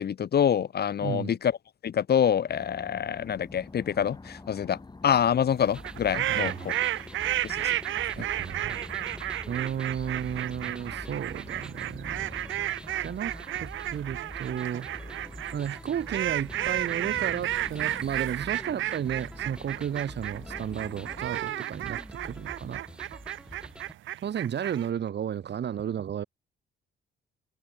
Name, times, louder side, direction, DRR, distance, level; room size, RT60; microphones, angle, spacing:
voice 1, 0.0-1.5 1.8-4.8 5.0-6.7 7.4-7.6, left 8 dB, 55° left, 1.8 m, -26 dB
voice 2, 1.0-1.3 6.3-6.7 8.1-8.8 9.5-12.4 13.0-13.3 13.6-14.9 15.5-22.8 24.2-26.2, right 9 dB, 60° right, 4.8 m, -33 dB
sound 1, 2.5-21.4, left 3 dB, 20° left, 3.4 m, -47 dB
sound 2, 5.7-23.9, right 1 dB, 5° right, 3.7 m, -46 dB
sound 3, 5.8-24.9, right 13 dB, 80° right, 2.1 m, -32 dB
cardioid pair, 90°, 20 cm